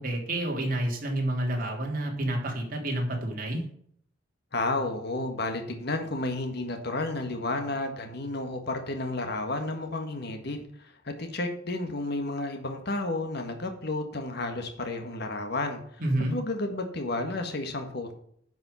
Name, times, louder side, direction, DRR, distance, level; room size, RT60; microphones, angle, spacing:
voice 1, 0.0-3.6 16.0-16.3, right 1 dB, 50° right, 1 dB, 3.1 m, -29 dB
voice 2, 4.5-16.0 16.3-18.1, left 2 dB, 60° left, 5 dB, 1.6 m, -32 dB
11.0 x 5.6 x 6.9 m, 0.65 s
head